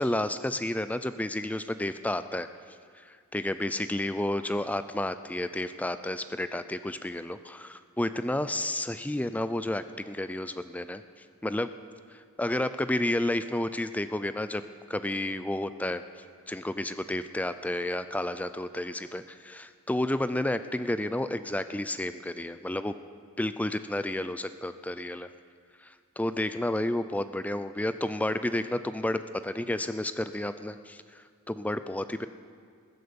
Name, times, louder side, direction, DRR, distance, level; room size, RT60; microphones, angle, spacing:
voice 1, 0.0-2.5 2.9-11.7 12.1-14.6 14.9-16.0 16.5-23.0 23.4-25.3 25.8-32.3, left 1 dB, 5° left, 11 dB, 0.4 m, -31 dB
20.5 x 7.8 x 7.0 m, 2.1 s
head